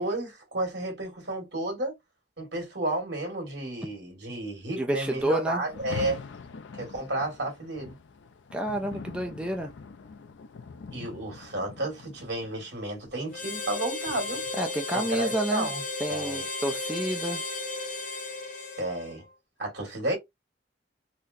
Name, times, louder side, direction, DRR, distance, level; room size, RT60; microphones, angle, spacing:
voice 1, 0.0-1.9 2.4-6.2 6.8-8.0 10.9-14.4 14.9-15.8 16.1-16.5 18.8-19.2 19.6-20.2, right 1 dB, 75° right, 2.0 m, -32 dB
voice 2, 4.8-5.6 8.5-9.7 14.6-15.7 16.0-17.4, right 1 dB, 5° right, 0.4 m, -29 dB
Rain, 5.6-14.7, left 5 dB, 90° left, 0.4 m, -44 dB
Harmonica, 13.3-19.3, left 3 dB, 45° left, 0.7 m, -34 dB
3.9 x 2.1 x 2.6 m
head